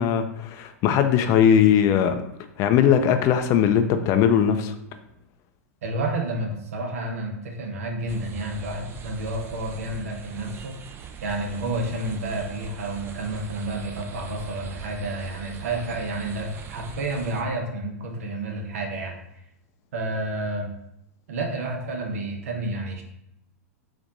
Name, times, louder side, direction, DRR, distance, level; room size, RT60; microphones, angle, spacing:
voice 1, 0.0-2.2 2.6-4.7, left 8 dB, 40° left, 8 dB, 0.4 m, -19 dB
voice 2, 5.8-10.8 11.2-19.2 19.9-20.7 21.3-23.0, right 2 dB, 65° right, 3 dB, 0.8 m, -30 dB
sound 1, 8.1-17.4, right 7 dB, 30° right, 0.4 m, -41 dB
4.1 x 2.5 x 3.9 m, 0.81 s
figure-of-eight pair, 100°, 8 cm